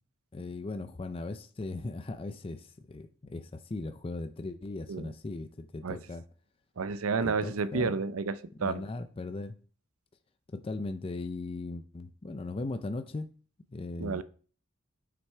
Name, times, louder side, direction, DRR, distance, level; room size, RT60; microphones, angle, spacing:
voice 1, 0.3-6.2 7.2-8.0 8.6-9.6 10.5-13.3 13.7-14.2, left 2 dB, 25° left, 0.4 m, -38 dB
voice 2, 6.8-8.8 14.0-14.2, right 4 dB, 75° right, 0.6 m, -31 dB
8.1 x 6.0 x 4.4 m
head